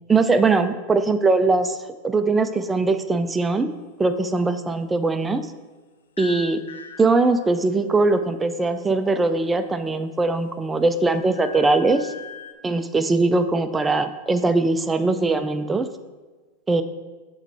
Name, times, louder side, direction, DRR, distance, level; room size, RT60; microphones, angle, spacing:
voice 1, 0.1-1.8 2.0-3.7 4.0-5.5 6.2-6.6 7.0-12.1 12.6-15.9 16.7-16.8, right 3 dB, 15° right, 9 dB, 0.4 m, -21 dB
sound 1, 6.2-7.7 9.6-10.4 10.7-12.5, left 5 dB, 80° left, 0.5 m, -41 dB
7.3 x 3.1 x 4.5 m, 1.3 s
hypercardioid pair, 95°, 0 cm